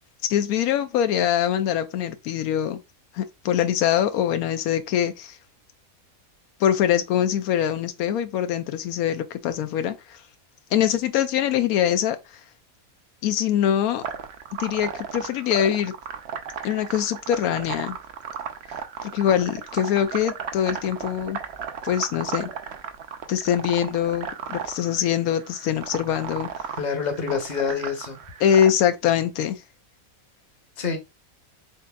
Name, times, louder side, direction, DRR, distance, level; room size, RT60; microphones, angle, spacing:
voice 1, 0.3-2.8 3.1-5.4 6.6-10.2 10.7-12.2 13.2-14.0 14.6-15.9 16.6-18.0 19.0-21.4 21.8-22.5 23.3-26.8 28.4-29.6, left 10 dB, 90° left, 1.1 m, -23 dB
sound 1, 14.0-28.7, right 7 dB, 60° right, 0.8 m, -35 dB
voice 2, 26.8-28.2 30.8-31.0, left 6 dB, 35° left, 1.0 m, -27 dB
4.3 x 3.7 x 2.3 m
omnidirectional pair, 1.5 m